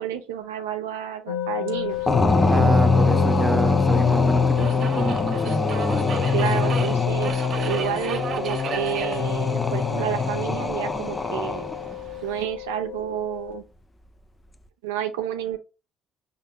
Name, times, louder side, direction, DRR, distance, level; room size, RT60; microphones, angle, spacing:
voice 1, 0.0-2.1 6.3-11.7 12.2-13.7 14.8-15.6, right 11 dB, 85° right, 0.6 m, -30 dB
sound 1, 1.3-13.6, left 14 dB, 85° left, 0.5 m, -33 dB
Subway metro underground, 1.9-12.5, right 5 dB, 60° right, 0.8 m, -37 dB
sound 2, 2.1-11.9, left 3 dB, 25° left, 0.6 m, -23 dB
voice 2, 2.5-5.6, right 3 dB, 25° right, 0.7 m, -28 dB
5.4 x 3.9 x 2.3 m
hypercardioid pair, 60°, 0 cm